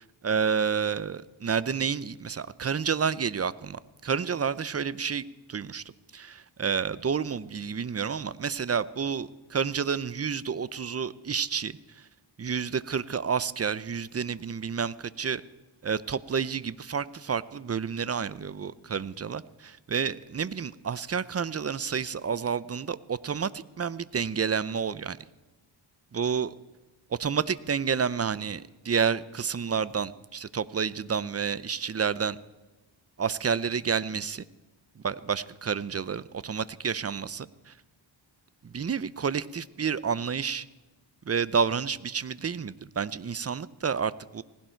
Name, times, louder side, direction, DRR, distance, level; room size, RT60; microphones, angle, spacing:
voice 1, 0.2-5.8 6.1-12.0 12.4-15.4 15.8-25.2 26.1-26.5 27.1-32.4 33.2-34.4 35.0-37.7 38.6-40.7 41.2-44.4, right 6 dB, 30° right, 18 dB, 0.6 m, -30 dB
19.0 x 16.0 x 4.5 m, 1.1 s
cardioid pair, 80°, 48 cm